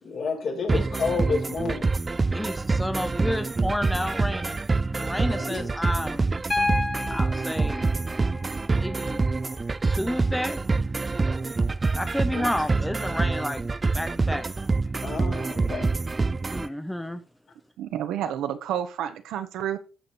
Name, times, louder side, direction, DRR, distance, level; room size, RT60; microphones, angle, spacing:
voice 1, 0.0-1.9 5.4-5.7 12.3-12.5 15.0-15.9, left 4 dB, 60° left, 4.3 m, -30 dB
sound 1, 0.7-16.7, right 3 dB, 25° right, 0.5 m, -26 dB
voice 2, 2.3-4.6 4.9-6.3 7.1-7.8 8.8-9.3 9.8-10.7 11.6-11.7 11.9-13.7 13.9-14.5 16.5-17.2, left 1 dB, 5° left, 0.8 m, -31 dB
Piano, 6.5-10.5 12.1-12.2, left 2 dB, 25° left, 2.0 m, -32 dB
voice 3, 17.8-19.8, right 10 dB, 85° right, 1.2 m, -30 dB
13.5 x 5.5 x 4.1 m
cardioid pair, 90°, 0 cm